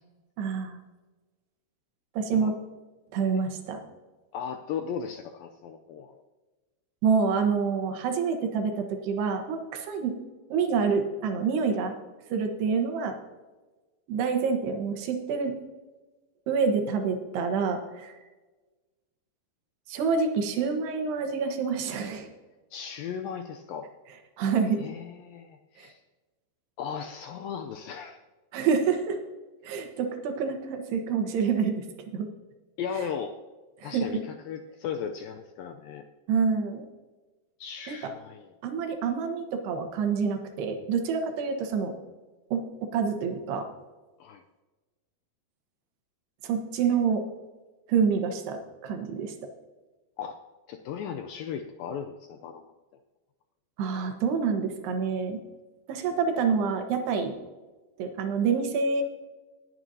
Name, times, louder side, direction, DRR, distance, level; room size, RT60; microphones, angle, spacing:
voice 1, 0.4-0.8 2.2-2.5 3.1-3.8 7.0-10.1 10.5-11.9 12.3-13.1 14.1-15.5 16.5-18.1 19.9-22.3 24.4-24.8 25.8-25.9 28.5-29.2 29.6-31.9 32.1-32.3 33.8-34.1 36.3-36.8 37.9-38.0 38.6-41.9 42.5-43.7 46.4-47.2 47.9-49.3 53.8-55.4 55.9-57.3 58.0-59.0, right 5 dB, 80° right, 5 dB, 3.3 m, -27 dB
voice 2, 4.3-6.2 22.7-23.9 24.8-26.0 26.8-28.2 29.7-29.8 32.8-33.4 33.8-36.0 37.6-38.5 44.2-44.4 50.2-50.4 50.7-52.7, left 7 dB, 80° left, 6 dB, 2.1 m, -36 dB
19.5 x 9.0 x 2.7 m, 1.2 s
omnidirectional pair, 4.6 m